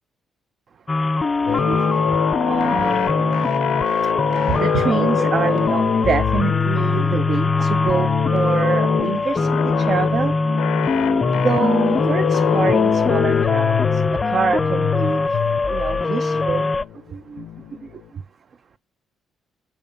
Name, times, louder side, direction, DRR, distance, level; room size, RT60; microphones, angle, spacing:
sound 1, 0.9-16.8, left 3 dB, 25° left, 0.3 m, -22 dB
sound 2, 1.5-18.0, left 11 dB, 85° left, 0.5 m, -25 dB
voice 1, 1.7-2.0 2.5-3.7 4.5-10.3 11.3-13.8 14.2-15.2 15.7-16.7 17.1-17.4, right 6 dB, 50° right, 0.5 m, -25 dB
6.9 x 5.3 x 5.3 m
cardioid pair, 90°, 0 cm